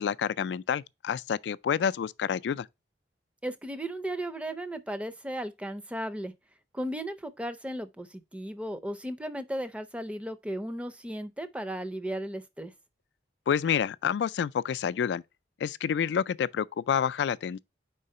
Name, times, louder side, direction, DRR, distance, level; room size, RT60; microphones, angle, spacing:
voice 1, 0.0-2.7 13.5-15.2 15.6-17.6, left 7 dB, 80° left, 0.3 m, -28 dB
voice 2, 3.4-6.3 6.7-12.7, right 1 dB, 5° right, 0.5 m, -35 dB
4.8 x 3.8 x 5.3 m
head